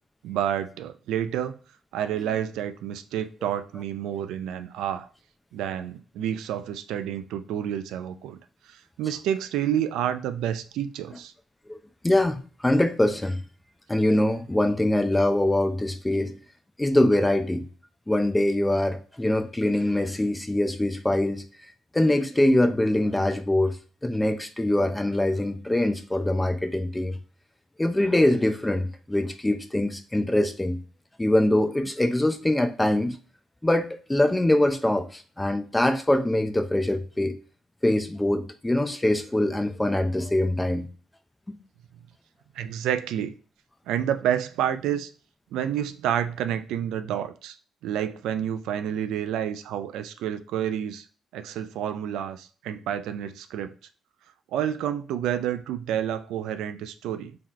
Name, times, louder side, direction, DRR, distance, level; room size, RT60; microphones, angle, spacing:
voice 1, 0.2-1.6 1.9-5.1 5.5-8.4 8.7-11.3 42.5-43.3 43.9-45.1 45.5-47.6 47.8-51.0 51.3-53.7 54.5-57.4, right 10 dB, 90° right, 0.4 m, -29 dB
voice 2, 12.0-13.4 13.9-16.4 16.8-17.7 18.1-21.4 21.9-23.8 24.0-27.2 27.8-30.8 31.2-33.2 33.6-37.3 37.8-40.9 41.5-41.6, left 1 dB, 10° left, 0.5 m, -23 dB
3.9 x 2.9 x 3.0 m
cardioid pair, 90°, 0 cm